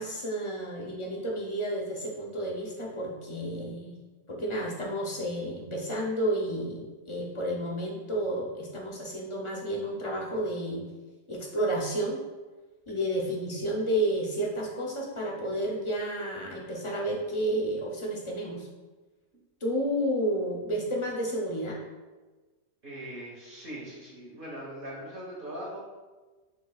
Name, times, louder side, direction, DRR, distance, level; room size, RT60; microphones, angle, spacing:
voice 1, 0.0-3.9 4.3-10.8 11.3-12.2 12.9-18.7 19.6-21.8, right 1 dB, 30° left, -2 dB, 0.6 m, -31 dB
voice 2, 22.8-25.8, right 1 dB, 50° right, -4 dB, 1.3 m, -40 dB
6.5 x 3.0 x 2.3 m, 1.3 s
omnidirectional pair, 1.2 m